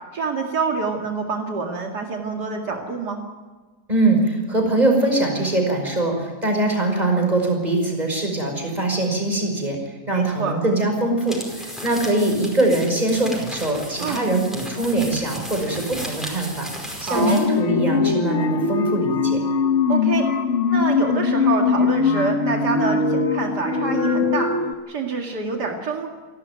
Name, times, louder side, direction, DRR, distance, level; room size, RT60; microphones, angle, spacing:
voice 1, 0.1-3.2 10.1-10.6 14.0-14.2 17.0-17.4 19.9-20.3 20.7-24.5 24.9-26.1, right 4 dB, 85° right, 2 dB, 2.7 m, -26 dB
voice 2, 3.9-16.7 17.0-19.4, right 2 dB, 25° right, 2 dB, 5.5 m, -22 dB
sound 1, 11.2-17.6, equal, ahead, 5.0 m, -35 dB
sound 2, 17.2-24.7, left 5 dB, 50° left, 1.4 m, -21 dB
28.0 x 12.5 x 9.3 m, 1.3 s
omnidirectional pair, 1.7 m